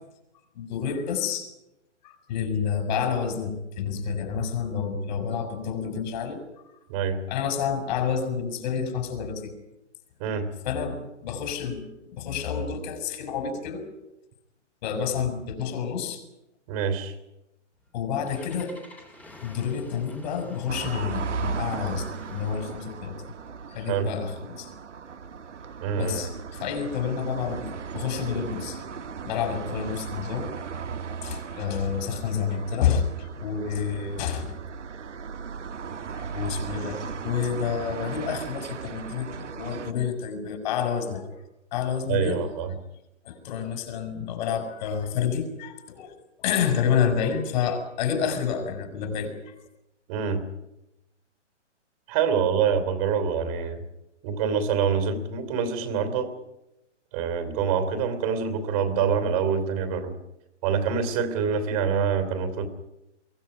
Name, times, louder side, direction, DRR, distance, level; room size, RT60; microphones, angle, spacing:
voice 1, 0.5-1.5 2.0-6.4 7.3-9.5 10.6-13.9 14.8-16.2 17.9-18.7 19.4-23.2 23.7-24.7 25.9-28.8 29.2-30.5 31.2-34.5 36.1-41.3 41.7-42.5 43.2-49.5, left 7 dB, 35° left, 7 dB, 5.5 m, -29 dB
voice 2, 6.9-7.2 10.2-10.5 16.7-17.1 23.9-24.1 25.8-26.3 42.1-42.7 50.1-50.4 52.1-53.8 54.2-56.3 57.1-60.1 60.6-62.7, right 6 dB, 30° right, 9 dB, 3.1 m, -26 dB
Engine starting, 17.7-22.9, left 1 dB, 5° left, 2.8 m, -49 dB
sound 1, 20.7-39.9, right 6 dB, 75° right, 1.8 m, -37 dB
23.5 x 17.0 x 9.7 m, 0.91 s
hypercardioid pair, 145°, 36 cm